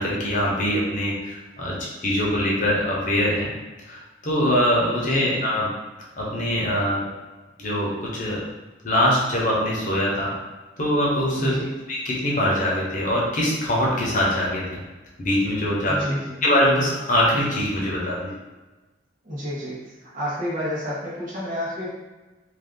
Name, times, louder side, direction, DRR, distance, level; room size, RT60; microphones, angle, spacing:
voice 1, 0.0-1.8 2.0-3.5 3.9-5.7 6.2-7.1 7.6-8.4 8.8-10.3 10.8-11.6 11.9-14.8 15.2-16.0 16.4-18.4, equal, 45° left, -4 dB, 0.7 m, -23 dB
voice 2, 5.0-5.3 11.4-11.7 15.9-16.4 19.2-19.8 20.1-21.9, equal, 45° right, -6 dB, 0.9 m, -29 dB
2.6 x 2.3 x 3.6 m, 1.2 s
head